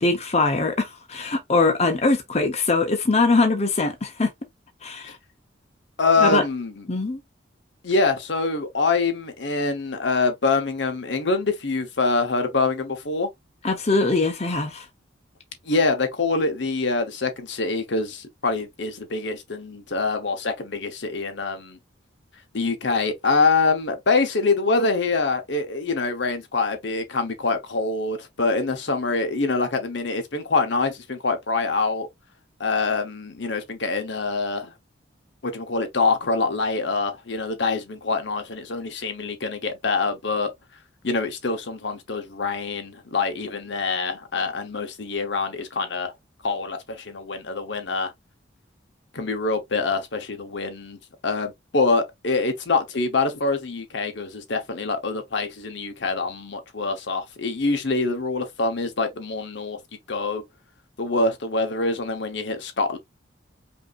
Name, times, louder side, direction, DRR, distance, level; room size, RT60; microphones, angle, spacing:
voice 1, 0.0-4.3 4.8-5.2 6.2-6.4 6.9-7.2 13.6-14.9, left 3 dB, 35° left, 0.7 m, -22 dB
voice 2, 6.0-6.8 7.8-13.3 15.6-21.8 22.5-32.1 32.6-34.7 35.4-40.5 41.0-46.1 46.4-48.1 49.1-51.0 51.2-59.8 60.1-60.4 61.0-63.0, left 3 dB, 65° left, 0.9 m, -25 dB
5.3 x 2.8 x 2.4 m
head